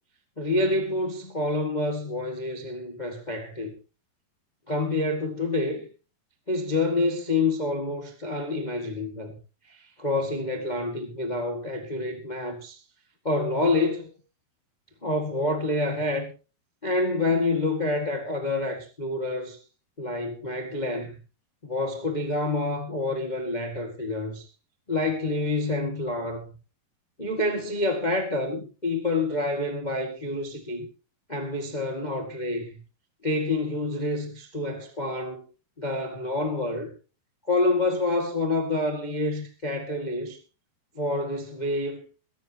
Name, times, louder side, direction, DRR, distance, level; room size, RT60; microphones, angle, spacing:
voice 1, 0.4-3.7 4.7-5.9 6.5-9.4 9.7-12.8 13.2-14.1 15.0-16.3 16.8-19.6 20.0-21.1 21.6-24.5 24.9-26.4 27.2-30.9 31.3-32.8 33.2-35.4 35.8-36.9 37.5-40.4 40.9-42.0, left 2 dB, 25° left, 0.9 m, -27 dB
22.5 x 12.0 x 3.0 m
omnidirectional pair, 4.6 m